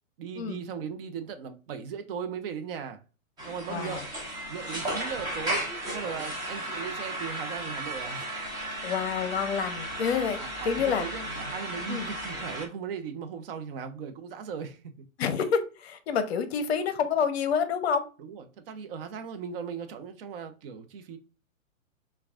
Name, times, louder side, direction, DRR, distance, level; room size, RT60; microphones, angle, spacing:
voice 1, 0.2-3.0 3.4-4.1 4.5-8.3 10.4-14.8 18.2-21.2, right 7 dB, 45° right, 0.7 m, -38 dB
sound 1, 3.4-12.7, right 1 dB, 10° right, 0.5 m, -35 dB
voice 2, 3.7-4.0 8.8-11.0 11.9-12.1 15.2-18.0, left 6 dB, 50° left, 0.6 m, -28 dB
5.8 x 2.3 x 2.3 m
hypercardioid pair, 135°, 40 cm